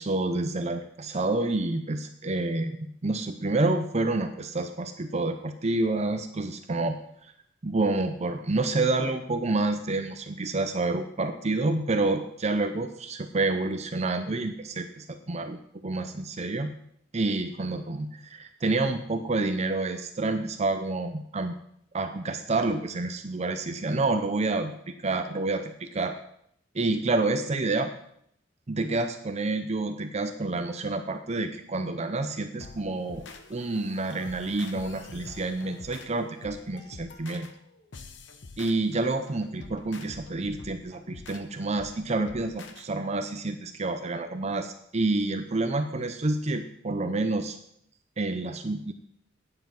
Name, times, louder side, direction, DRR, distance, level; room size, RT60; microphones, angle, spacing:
voice 1, 0.0-7.0 7.6-16.7 17.1-21.6 21.9-24.7 25.0-26.2 26.7-27.9 28.7-33.2 33.5-37.5 38.6-47.6 48.2-48.9, right 2 dB, 35° right, 7 dB, 0.6 m, -28 dB
sound 1, 32.6-42.9, left 3 dB, 65° left, 1.0 m, -46 dB
9.4 x 7.8 x 5.9 m, 0.70 s
head